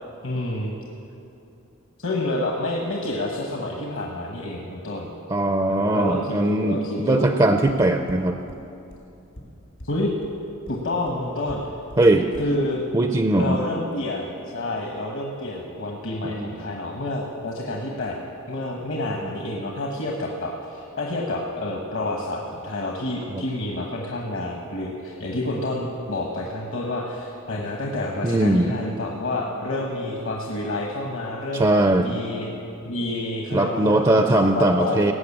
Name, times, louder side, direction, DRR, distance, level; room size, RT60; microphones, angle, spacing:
voice 1, 0.2-0.7 2.0-5.1 5.7-7.3 9.8-10.1 10.7-11.6 12.4-12.8 13.3-31.6 32.0-32.5 32.8-35.0, left 1 dB, 65° left, -1 dB, 1.2 m, -29 dB
voice 2, 5.3-8.4 12.0-12.3 12.9-13.6 16.2-16.6 23.3-23.4 28.2-28.7 31.5-32.2 33.5-35.1, right 1 dB, 20° right, 6 dB, 0.5 m, -20 dB
sound 1, 7.7-7.8 8.1-8.2 8.5-8.6 8.9-9.0 9.3-9.4 9.8-9.9 10.2-10.3 10.7-10.8 11.1-11.2 11.5-11.6 11.9-12.0 12.3-12.4, equal, 80° left, 3.0 m, -40 dB
17.5 x 6.6 x 8.5 m, 2.7 s
head